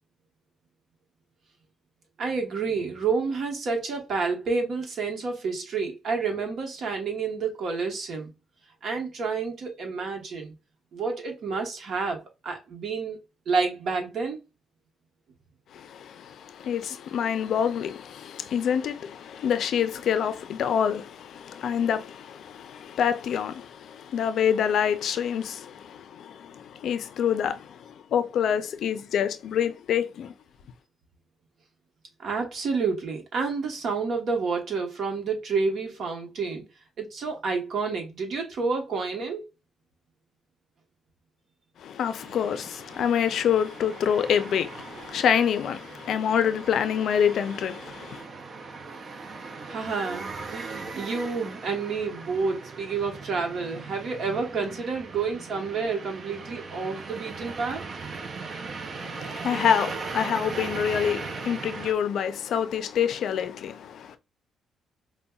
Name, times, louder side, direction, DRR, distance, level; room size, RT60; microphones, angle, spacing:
voice 1, 2.2-8.3 8.8-10.5 10.9-13.2 13.5-14.4 32.2-36.6 37.0-39.4 49.7-57.8, right 4 dB, 65° right, 1.0 m, -29 dB
voice 2, 15.7-30.3 41.8-48.2 59.0-64.2, left 8 dB, 70° left, 0.4 m, -27 dB
sound 1, 42.1-61.9, right 4 dB, 45° right, 0.5 m, -39 dB
5.1 x 2.2 x 2.3 m
cardioid pair, 90°, 0 cm